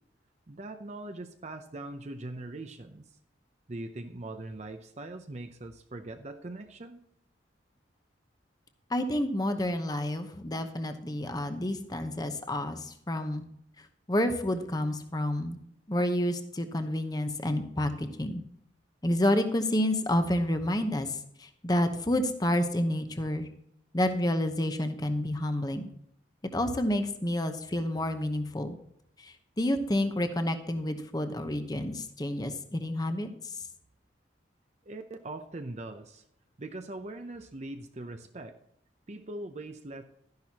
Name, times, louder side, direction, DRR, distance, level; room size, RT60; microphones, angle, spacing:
voice 1, 0.5-3.0 3.7-7.0 34.9-36.2 36.6-38.6 39.1-40.0, right 2 dB, 35° right, 6 dB, 0.6 m, -41 dB
voice 2, 8.9-13.4 14.1-15.6 15.9-18.4 19.0-23.5 23.9-25.8 26.5-28.8 29.2-33.5, left 1 dB, 20° left, 7 dB, 0.9 m, -29 dB
12.5 x 10.5 x 2.9 m, 0.74 s
head